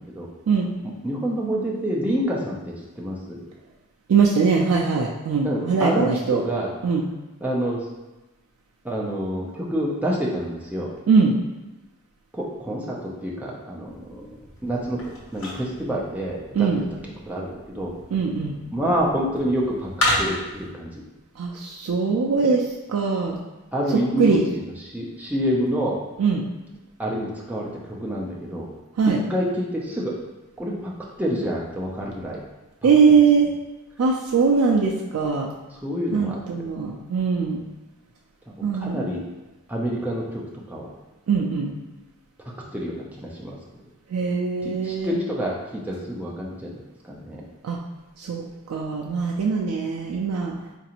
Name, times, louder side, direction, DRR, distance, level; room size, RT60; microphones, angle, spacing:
voice 1, 1.0-3.4 5.4-6.7 7.4-7.8 8.8-10.9 12.3-15.0 15.3-16.7 17.3-17.9 18.7-19.9 20.2-21.0 23.7-26.0 27.0-28.7 29.3-30.1 30.6-30.9 31.2-32.4 35.8-36.4 38.6-39.2 39.7-40.4 40.7-40.9 42.7-43.6 44.6-46.7 47.0-47.4, equal, 5° right, -4 dB, 0.4 m, -27 dB
voice 2, 4.1-6.4 6.8-7.1 11.1-11.4 16.5-16.8 18.1-18.6 21.4-22.6 22.9-23.4 23.9-24.4 26.2-26.4 29.0-29.2 32.8-33.5 34.0-35.5 36.1-37.6 38.6-39.0 41.3-41.7 44.1-45.2 47.6-47.8 48.2-50.5, right 5 dB, 75° right, -1 dB, 0.3 m, -21 dB
sound 1, 13.8-20.7, left 1 dB, 60° left, 0.9 m, -32 dB
3.9 x 2.5 x 2.8 m, 1.1 s
head